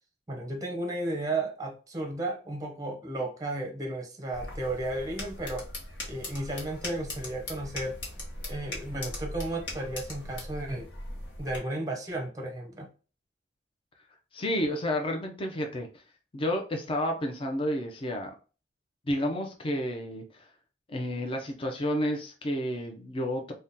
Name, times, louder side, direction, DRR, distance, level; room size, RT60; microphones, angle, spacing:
voice 1, 0.3-5.7 6.1-8.0 8.5-10.9 11.4-12.9, right 2 dB, 20° right, 0.6 m, -34 dB
sound 1, 4.3-11.6, left 1 dB, 85° left, 1.3 m, -40 dB
voice 2, 14.3-15.9 16.3-18.3 19.1-20.5 20.9-23.5, equal, 30° left, 0.5 m, -30 dB
2.7 x 2.2 x 3.5 m
head